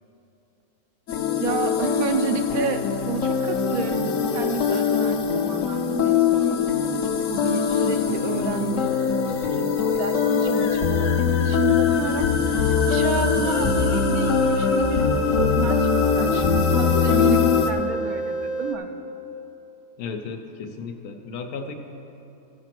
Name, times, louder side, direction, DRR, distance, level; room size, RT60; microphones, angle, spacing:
sound 1, 1.1-17.7, left 6 dB, 65° left, 1.0 m, -22 dB
voice 1, 1.4-6.7 7.3-15.9 16.2-18.9, right 6 dB, 80° right, 7 dB, 1.1 m, -30 dB
sound 2, 13.4-18.8, right 2 dB, 30° left, 0.3 m, -29 dB
voice 2, 20.0-21.7, left 5 dB, 85° left, 5 dB, 1.3 m, -34 dB
14.5 x 5.0 x 6.0 m, 2.9 s
omnidirectional pair, 1.5 m